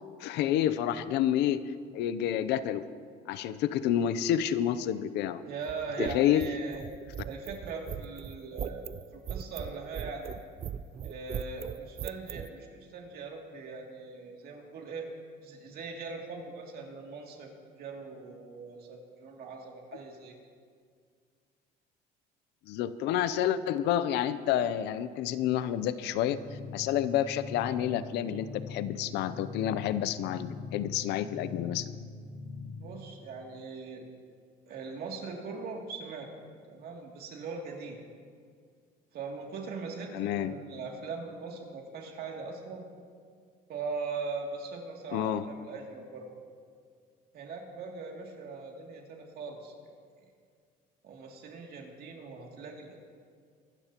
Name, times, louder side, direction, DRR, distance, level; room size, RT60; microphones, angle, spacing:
voice 1, 0.2-1.6 1.9-2.8 3.3-5.4 6.0-6.5 22.7-26.4 26.7-32.0 40.1-40.5 45.1-45.5, left 11 dB, 85° left, 14 dB, 0.6 m, -29 dB
voice 2, 5.4-6.8 7.2-10.4 11.0-15.1 15.4-17.5 17.8-20.3 32.8-34.0 34.7-36.3 36.7-38.0 39.1-42.8 43.7-46.3 47.3-49.9 51.0-53.0, right 4 dB, 65° right, 0 dB, 2.6 m, -40 dB
sound 1, 5.6-12.5, right 8 dB, 35° right, 0.4 m, -38 dB
sound 2, 26.1-32.7, left 4 dB, 5° right, 3.5 m, -42 dB
24.0 x 12.5 x 3.0 m, 2.1 s
cardioid pair, 110°, 17 cm